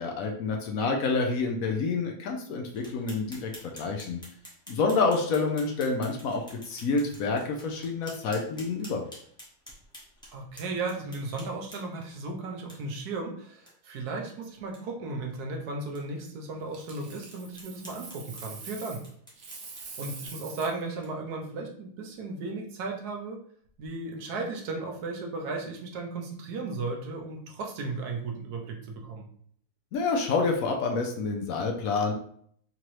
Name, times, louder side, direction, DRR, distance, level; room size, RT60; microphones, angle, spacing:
voice 1, 0.0-4.2 4.7-9.0 29.9-32.1, left 4 dB, 70° left, 2 dB, 0.9 m, -28 dB
sound 1, 2.7-12.1 12.7-12.8 13.1-13.2 13.6-13.7 14.1-14.2 14.6-14.8 15.3-15.4 15.9-16.0 16.5-16.6 17.3-21.3, equal, 5° left, 0.7 m, -50 dB
voice 2, 10.3-19.0 20.0-23.4 23.8-29.3, right 3 dB, 75° right, 1 dB, 1.2 m, -35 dB
Coin (dropping), 16.7-19.1 19.4-20.8 23.6-23.9, right 4 dB, 55° right, 0.9 m, -44 dB
3.7 x 2.9 x 3.0 m, 0.62 s
omnidirectional pair, 1.7 m